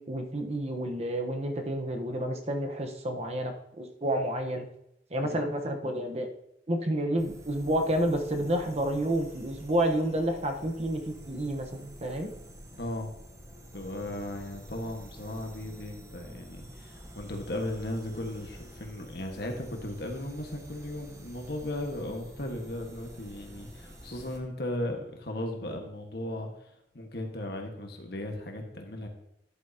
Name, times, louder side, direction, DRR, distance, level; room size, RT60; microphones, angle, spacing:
voice 1, 0.1-4.7 5.1-6.3 6.7-12.3, right 1 dB, 35° right, 4 dB, 1.0 m, -30 dB
sound 1, 7.2-24.4, equal, 15° right, 1.1 m, -49 dB
voice 2, 12.8-13.1 13.7-29.1, left 1 dB, 65° left, 3 dB, 1.6 m, -36 dB
11.0 x 8.5 x 2.8 m, 0.81 s
head